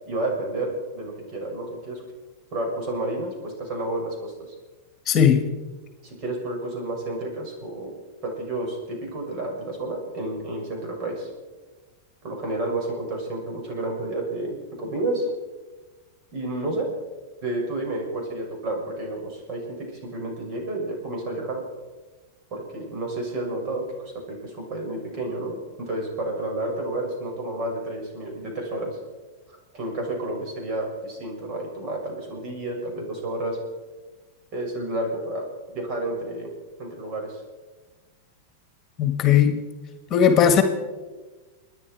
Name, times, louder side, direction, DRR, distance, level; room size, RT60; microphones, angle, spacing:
voice 1, 0.0-2.0 2.5-4.5 6.0-7.9 8.2-11.3 12.2-15.3 16.3-16.9 17.4-21.7 22.5-23.8 24.3-29.0 29.7-33.6 34.5-36.5 36.8-37.4, right 1 dB, 45° right, 0 dB, 6.8 m, -30 dB
voice 2, 5.1-5.4 39.0-39.6 40.1-40.6, left 8 dB, 35° left, 8 dB, 1.6 m, -17 dB
30.0 x 10.0 x 4.7 m, 1.3 s
hypercardioid pair, 125°, 0 cm